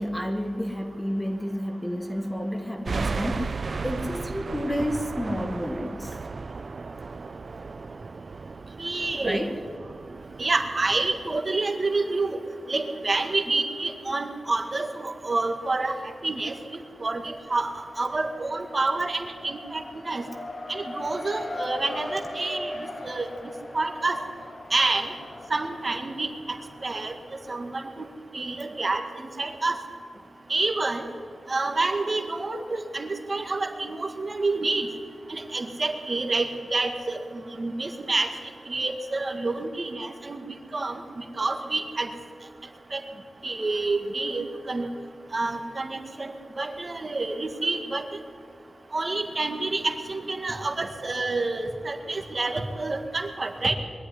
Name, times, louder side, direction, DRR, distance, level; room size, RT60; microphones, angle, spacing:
voice 1, 0.0-3.5 3.8-6.2 9.2-9.6, equal, 10° left, 6 dB, 1.2 m, -30 dB
sound 1, 2.9-11.4, right 4 dB, 50° right, 0.6 m, -35 dB
voice 2, 8.8-9.4 10.4-12.4 12.7-16.5 17.0-20.2 20.7-22.7 23.0-23.2 23.7-24.2 24.7-25.1 25.5-26.3 26.8-27.1 27.5-28.1 28.3-29.0 29.4-29.8 30.5-31.0 31.5-34.9 35.3-38.3 38.7-40.4 40.7-42.1 42.9-43.0 43.4-44.9 45.3-48.0 48.9-53.7, right 3 dB, 35° right, 5 dB, 1.9 m, -28 dB
Race car auto racing, 15.7-16.5 16.8-28.1, left 1 dB, 40° left, 1.8 m, -40 dB
22.0 x 12.0 x 9.9 m, 2.3 s
wide cardioid pair, 130°, 0 cm